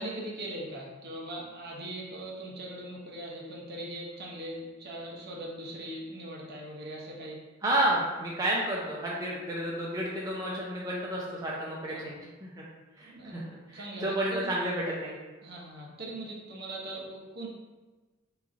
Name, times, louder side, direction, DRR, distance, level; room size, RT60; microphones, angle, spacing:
voice 1, 0.0-7.4 11.9-12.0 13.0-13.5 13.7-14.5 15.4-17.5, right 1 dB, 55° right, -3 dB, 0.7 m, -40 dB
voice 2, 7.6-12.2 12.6-12.7 13.0-13.4 13.7-15.1, right 1 dB, 20° right, -5 dB, 0.4 m, -31 dB
3.1 x 2.4 x 3.7 m, 1.3 s
head